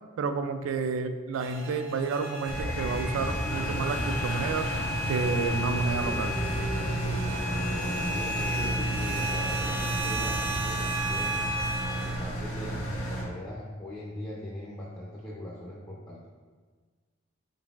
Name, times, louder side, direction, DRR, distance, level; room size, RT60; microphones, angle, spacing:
voice 1, 0.2-4.7 5.1-6.3, right 4 dB, 80° right, 9 dB, 0.3 m, -30 dB
sound 1, 1.3-12.2, right 1 dB, 50° right, 0.7 m, -34 dB
Engine, 2.5-13.2, right 1 dB, 85° left, 0.8 m, -32 dB
sound 2, 2.9-10.3, right 1 dB, 50° left, 0.8 m, -43 dB
voice 2, 7.7-11.5 11.9-16.3, left 1 dB, 20° left, -6 dB, 0.4 m, -40 dB
3.9 x 3.8 x 2.3 m, 1.4 s
head